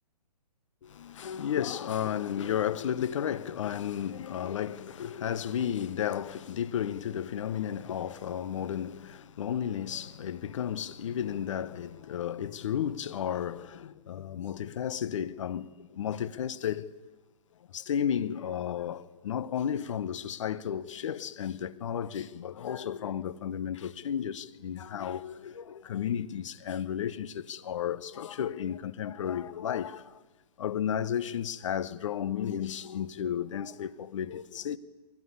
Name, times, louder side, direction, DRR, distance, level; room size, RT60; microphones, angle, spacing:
voice 1, 0.8-16.9 17.7-30.2 30.6-34.8, left 9 dB, 50° left, 1.0 m, -33 dB
23.0 x 17.5 x 9.8 m
hypercardioid pair, 150°, 21 cm